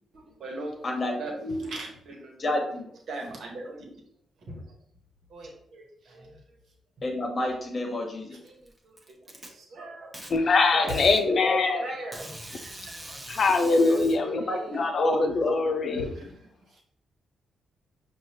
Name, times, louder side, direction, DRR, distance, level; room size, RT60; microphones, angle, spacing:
voice 1, 0.1-2.5 3.1-3.8 4.4-4.7 5.3-6.6 8.3-11.1 11.8-13.2 13.8-14.9 15.8-16.8, right 1 dB, 70° right, 0 dB, 1.3 m, -40 dB
voice 2, 0.8-1.6 2.4-2.8 7.0-8.4 11.2-11.6 14.5-15.5 15.8-16.0, left 1 dB, 35° left, 2 dB, 1.1 m, -29 dB
Packing tape duct tape, 8.5-9.5 10.1-10.3 10.9-11.2 12.1-14.2, right 1 dB, 15° right, 1.0 m, -42 dB
voice 3, 10.3-11.8 13.3-14.5 14.8-16.1, left 3 dB, 55° left, 7 dB, 0.6 m, -23 dB
5.4 x 2.6 x 3.0 m, 0.68 s
cardioid pair, 80°, 0 cm